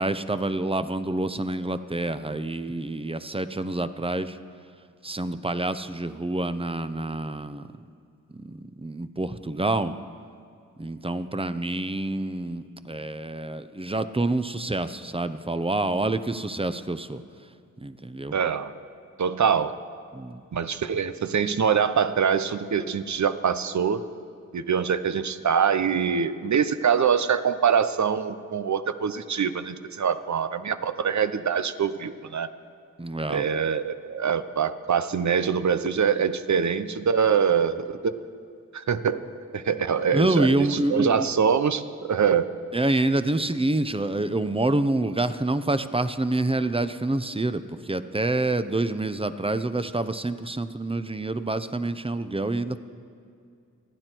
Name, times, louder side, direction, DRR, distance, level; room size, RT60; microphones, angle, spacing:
voice 1, 0.0-4.4 5.0-7.7 8.3-9.9 10.8-17.2 17.8-18.4 20.1-20.4 33.0-33.4 40.1-41.3 42.7-52.8, right 2 dB, 15° right, 11 dB, 0.8 m, -27 dB
voice 2, 18.3-18.7 19.2-19.7 20.5-24.0 24.5-32.5 33.3-38.1 38.7-39.2 39.5-42.5, right 7 dB, 60° right, 12 dB, 0.8 m, -24 dB
27.5 x 9.9 x 4.6 m, 2.4 s
cardioid pair, 50°, 32 cm